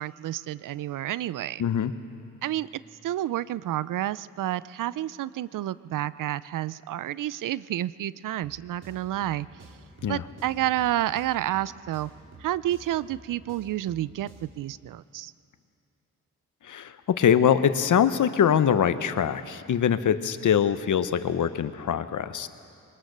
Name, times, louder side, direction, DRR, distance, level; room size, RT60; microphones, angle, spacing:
voice 1, 0.0-1.6 2.4-2.7 3.0-9.5 10.1-12.1 12.4-15.3, right 13 dB, 80° right, 18 dB, 0.5 m, -30 dB
voice 2, 1.6-1.9 10.0-10.2 16.7-22.5, left 8 dB, 70° left, 12 dB, 0.9 m, -23 dB
sound 1, 8.4-14.7, right 2 dB, 55° right, 4.3 m, -51 dB
22.0 x 19.5 x 6.7 m, 2.5 s
cardioid pair, 60°, 31 cm